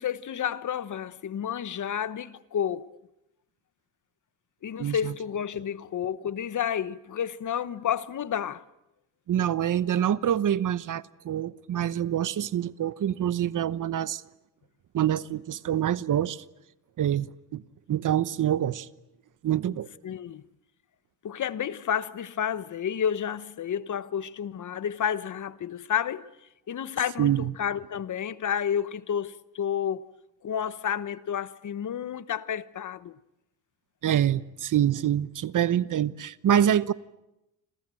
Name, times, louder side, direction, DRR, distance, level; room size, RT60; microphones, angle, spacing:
voice 1, 0.0-2.9 4.6-8.6 20.0-20.4 21.2-26.3 26.7-30.1 30.4-33.1, left 8 dB, 50° left, 1.1 m, -30 dB
voice 2, 4.8-5.1 9.3-14.2 14.9-16.4 17.0-17.6 17.9-18.9 19.4-19.9 27.2-27.5 34.0-36.9, right 10 dB, 55° right, 1.0 m, -26 dB
29.0 x 26.5 x 7.7 m
cardioid pair, 105°, 38 cm